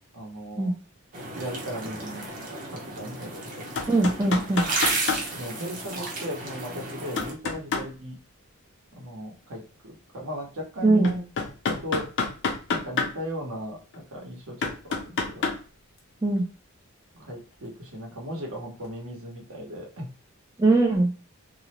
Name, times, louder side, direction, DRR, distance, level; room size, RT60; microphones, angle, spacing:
voice 1, 0.1-0.7 1.4-2.2 2.7-3.5 5.3-8.2 9.0-11.3 11.7-12.1 12.7-15.4 17.1-20.1, equal, 70° right, -1 dB, 0.9 m, -37 dB
sound 1, 1.1-7.3, right 2 dB, 40° right, 0.7 m, -33 dB
sound 2, 3.8-5.2 7.2-7.9 11.0-13.1 13.9-14.0 14.6-15.6 18.8-18.9, left 4 dB, 55° left, 0.5 m, -27 dB
voice 2, 3.9-4.7 10.8-11.1 16.2-16.5 20.6-21.1, right 2 dB, 15° right, 0 dB, 0.3 m, -21 dB
2.4 x 2.0 x 2.9 m, 0.37 s
head